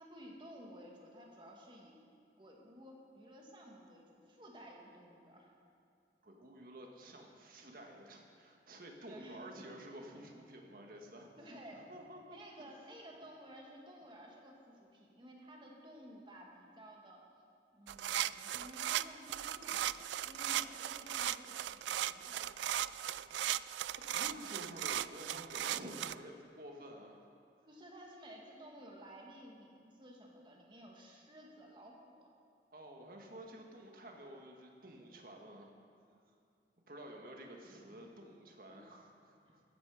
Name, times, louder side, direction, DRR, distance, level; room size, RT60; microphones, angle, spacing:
voice 1, 0.0-2.0 2.4-5.6 9.1-9.4 11.4-11.9 12.3-17.2 17.7-22.4 27.6-32.3 38.7-38.8 39.5-39.6, equal, 25° right, -1 dB, 2.1 m, -54 dB
voice 2, 6.2-11.3 11.9-12.4 24.1-27.2 32.7-35.7 36.9-39.6, right 1 dB, 50° right, 1 dB, 1.8 m, -51 dB
sound 1, 17.9-26.1, right 12 dB, 90° right, 0.3 m, -37 dB
15.0 x 14.0 x 5.1 m, 2.3 s
head